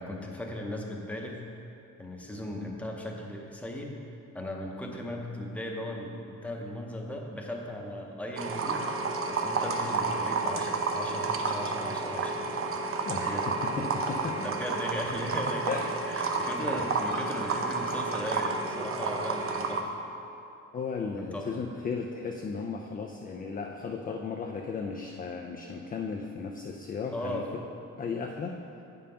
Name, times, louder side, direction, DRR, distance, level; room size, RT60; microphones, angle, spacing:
voice 1, 0.0-1.4 2.0-3.9 4.3-12.5 13.2-13.5 14.4-19.9 21.2-21.5 27.1-27.5, left 1 dB, 5° left, -1 dB, 0.7 m, -37 dB
sound 1, 8.4-19.8, right 4 dB, 40° right, 0.6 m, -31 dB
voice 2, 13.1-14.5 15.7-15.9 20.7-27.4 28.0-28.6, left 5 dB, 25° left, 2 dB, 0.4 m, -35 dB
8.7 x 5.4 x 5.6 m, 2.8 s
cardioid pair, 175°, 33 cm